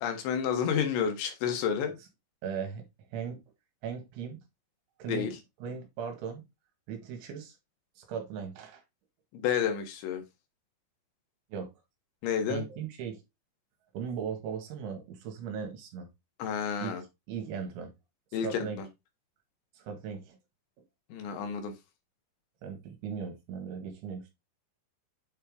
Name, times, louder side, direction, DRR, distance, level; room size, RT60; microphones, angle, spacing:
voice 1, 0.0-2.0 5.1-5.3 9.3-10.2 12.2-12.6 16.4-17.0 18.3-18.9 21.1-21.7, left 7 dB, 70° left, 3.5 m, -30 dB
voice 2, 2.4-3.4 3.8-4.4 5.0-5.4 5.6-6.4 6.9-7.6 8.0-8.8 11.5-11.7 12.5-13.2 13.9-16.1 16.8-17.0 17.3-17.9 18.4-18.8 19.8-20.4 22.6-24.3, right 7 dB, 70° right, 4.0 m, -38 dB
8.6 x 4.4 x 3.5 m
omnidirectional pair, 5.8 m